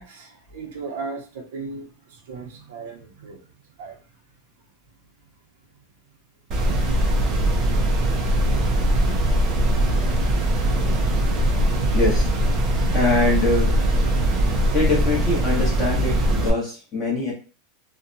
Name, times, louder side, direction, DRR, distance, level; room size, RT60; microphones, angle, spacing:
voice 1, 0.0-3.5 3.8-4.0, right 4 dB, 70° right, 1 dB, 0.7 m, -36 dB
sound 1, 6.5-16.5, right 1 dB, 25° right, 0.5 m, -21 dB
voice 2, 11.9-12.3 12.9-13.7 14.7-17.3, left 3 dB, 20° left, -4 dB, 1.1 m, -23 dB
2.7 x 2.2 x 2.6 m, 0.36 s
supercardioid pair, 180°, 0 cm